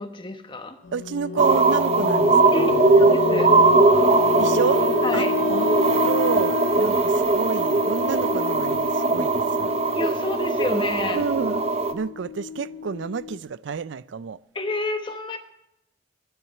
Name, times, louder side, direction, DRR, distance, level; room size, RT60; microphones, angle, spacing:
voice 1, 0.0-0.8 2.5-3.5 5.0-5.3 9.9-11.2 14.5-15.4, left 1 dB, 25° left, 1.1 m, -29 dB
sound 1, 0.8-13.4, left 6 dB, 80° left, 0.5 m, -29 dB
voice 2, 0.9-3.0 4.4-4.8 5.1-9.7 11.1-11.6 11.9-14.4, right 6 dB, 80° right, 0.4 m, -29 dB
sound 2, 1.4-11.9, right 3 dB, 35° right, 0.7 m, -20 dB
10.5 x 9.5 x 8.2 m
head